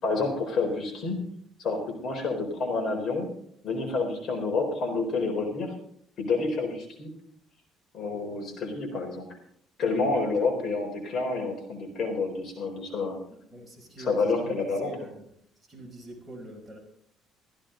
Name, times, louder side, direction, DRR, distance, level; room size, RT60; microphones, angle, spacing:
voice 1, 0.0-1.2 1.6-3.3 3.6-5.7 6.2-7.1 7.9-9.3 9.8-13.2 14.0-14.9, left 3 dB, 45° left, 2 dB, 4.1 m, -29 dB
voice 2, 10.0-10.6 13.5-15.2 15.7-16.8, right 1 dB, 10° right, -1 dB, 5.2 m, -45 dB
15.0 x 14.5 x 3.9 m, 0.65 s
cardioid pair, 135°, 0 cm